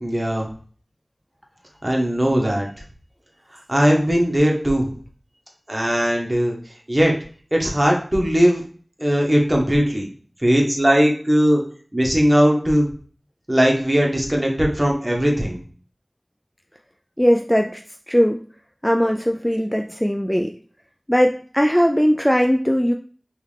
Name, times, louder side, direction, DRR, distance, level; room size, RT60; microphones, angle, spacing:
voice 1, 0.0-0.5 1.8-2.7 3.5-4.9 5.7-6.5 6.9-7.2 7.5-8.6 9.0-10.1 10.4-11.6 11.9-12.9 13.5-15.6, equal, 25° right, 0 dB, 1.1 m, -19 dB
voice 2, 17.2-17.8 18.1-18.4 18.8-20.5 21.1-22.9, equal, 10° left, 3 dB, 0.3 m, -19 dB
3.5 x 3.2 x 3.3 m, 0.44 s
wide cardioid pair, 50°, 0 cm